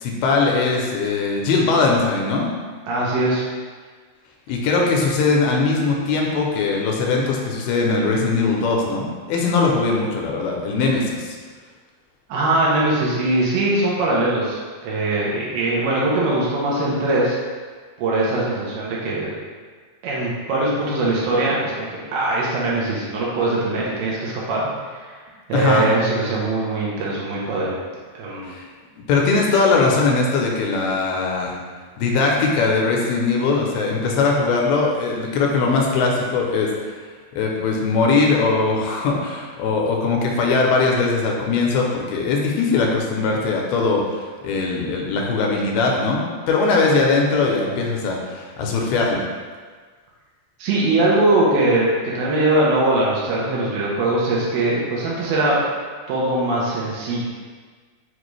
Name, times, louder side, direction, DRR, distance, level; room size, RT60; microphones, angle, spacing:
voice 1, 0.0-2.5 4.5-11.4 25.5-25.9 28.5-28.6 29.0-31.6 32.0-36.7 37.3-49.2, left 4 dB, 85° left, -1 dB, 2.4 m, -20 dB
voice 2, 2.9-3.4 12.3-17.4 18.0-19.3 20.0-24.6 24.9-25.2 25.5-27.8 28.1-28.5 50.6-51.9 52.2-55.6 56.1-57.3, right 2 dB, 75° right, -5 dB, 2.5 m, -21 dB
6.6 x 2.4 x 3.1 m, 1.5 s
omnidirectional pair, 4.4 m